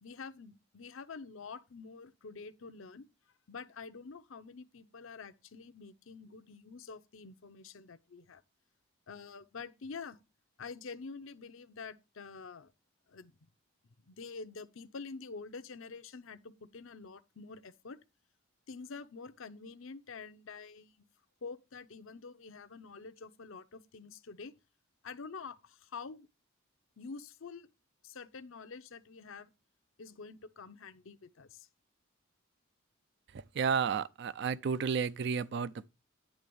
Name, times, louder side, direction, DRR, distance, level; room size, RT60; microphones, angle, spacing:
voice 1, 0.0-3.1 3.5-8.4 9.1-10.2 10.6-12.7 13.1-13.3 14.1-18.0 18.7-20.9 21.4-24.5 25.0-26.3 27.0-27.7 28.0-29.5 30.0-31.7, left 4 dB, 70° left, 0.7 m, -47 dB
voice 2, 33.5-35.9, right 6 dB, 50° right, 0.4 m, -32 dB
10.0 x 3.4 x 6.9 m
head